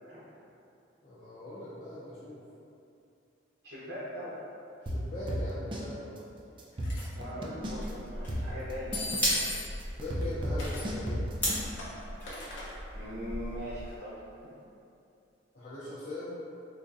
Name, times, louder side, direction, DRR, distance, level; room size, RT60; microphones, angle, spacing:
voice 1, 1.0-2.4 4.8-6.2 10.0-11.3 15.5-16.3, left 1 dB, 40° left, -12 dB, 0.5 m, -40 dB
voice 2, 3.6-4.4 7.1-9.1 12.9-14.2, equal, 65° right, -10 dB, 0.8 m, -40 dB
sound 1, 4.9-5.9 6.2-6.3 6.6-7.9 8.3-11.7, equal, 25° right, 0.3 m, -33 dB
sound 2, 6.8-7.1 8.9-9.9 10.6-10.9 11.4-12.7, left 2 dB, 85° left, 0.7 m, -37 dB
sound 3, 7.6-14.0, equal, 10° left, 0.8 m, -37 dB
4.2 x 2.6 x 2.4 m, 2.6 s
head